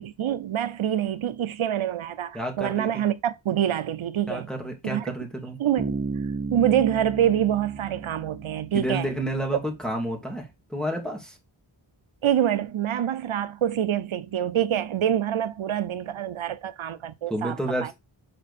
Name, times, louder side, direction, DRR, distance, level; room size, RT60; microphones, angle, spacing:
voice 1, 0.0-4.5 4.8-5.0 5.6-6.0 6.5-9.1 12.2-17.9, right 10 dB, 90° right, 0.6 m, -26 dB
voice 2, 2.3-3.0 4.3-5.6 8.7-11.4 17.3-17.9, right 1 dB, ahead, 2.5 m, -30 dB
Bass guitar, 5.8-9.4, right 4 dB, 25° right, 0.5 m, -33 dB
6.9 x 4.4 x 4.2 m
wide cardioid pair, 65°, 47 cm